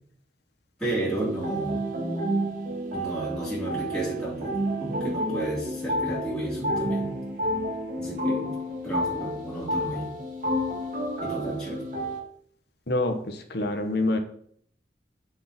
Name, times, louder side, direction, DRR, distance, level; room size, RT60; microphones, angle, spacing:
voice 1, 0.8-1.8 2.9-7.1 8.0-8.5 8.8-10.1 11.2-11.9, right 1 dB, 5° left, -8 dB, 3.3 m, -32 dB
sound 1, 1.1-12.2, equal, 45° right, 2.0 m, -30 dB
voice 2, 12.9-14.2, left 2 dB, 60° left, 5 dB, 1.2 m, -26 dB
8.0 x 6.5 x 4.3 m, 0.63 s
head